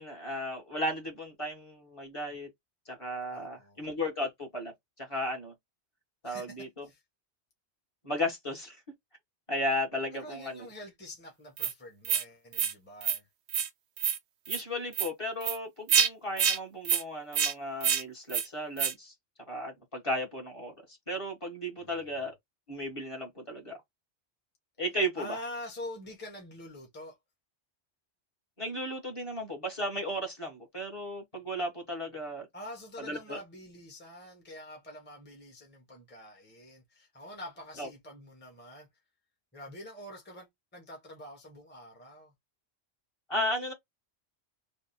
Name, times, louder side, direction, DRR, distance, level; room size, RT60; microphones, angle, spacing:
voice 1, 0.0-2.5 2.9-4.7 5.0-5.5 6.2-6.9 8.0-8.8 9.5-10.7 14.5-19.1 19.5-20.7 21.1-22.3 22.7-23.8 24.8-25.4 28.6-32.5 33.0-33.4 37.8-37.9 43.3-43.7, equal, 30° left, 1.4 m, -35 dB
voice 2, 3.3-3.8 6.2-7.0 10.1-13.2 21.8-22.2 25.1-27.2 32.5-38.9 39.5-42.3, left 1 dB, 10° left, 1.0 m, -46 dB
sound 1, 11.6-11.7 12.0-12.2 12.5-12.7 13.0-13.2 13.5-13.7 14.0-14.2 14.5-14.6 14.9-15.1 15.4-15.6 15.9-16.1 16.4-16.6 16.8-17.0 17.3-17.5 17.8-18.0 18.3-18.4 18.8-18.9, right 8 dB, 75° right, 0.9 m, -27 dB
3.4 x 2.2 x 4.1 m
omnidirectional pair, 1.1 m